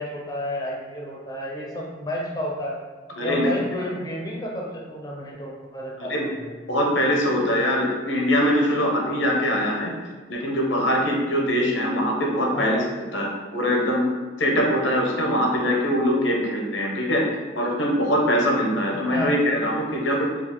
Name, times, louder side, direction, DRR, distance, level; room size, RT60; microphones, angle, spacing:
voice 1, 0.0-2.8 3.2-6.5 12.5-12.8 19.1-19.3, equal, 20° left, -3 dB, 0.5 m, -31 dB
voice 2, 3.2-3.5 6.0-6.3 6.7-9.9 10.3-12.8 13.1-14.0 14.4-17.2 17.5-20.3, equal, 85° left, 0 dB, 0.9 m, -22 dB
4.8 x 2.5 x 3.7 m, 1.3 s
head